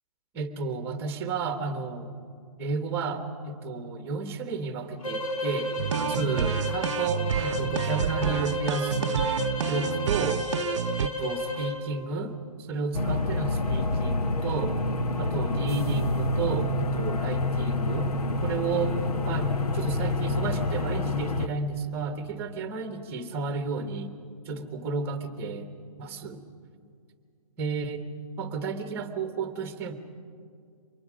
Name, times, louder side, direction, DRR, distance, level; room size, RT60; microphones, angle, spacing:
voice 1, 0.3-2.1 2.6-9.3 9.7-10.4 11.0-14.8 15.2-19.0 19.2-24.1 24.4-25.7 26.0-26.4 27.6-28.1 28.4-29.9, right 4 dB, 10° right, 7 dB, 1.2 m, -32 dB
sound 1, 5.0-11.8, left 1 dB, 70° left, 6.5 m, -32 dB
sound 2, 5.8-11.1, right 8 dB, 55° right, 0.5 m, -29 dB
sound 3, 12.9-21.5, left 2 dB, 90° left, 1.3 m, -27 dB
28.0 x 24.0 x 5.1 m, 2.2 s
hypercardioid pair, 170°, 19 cm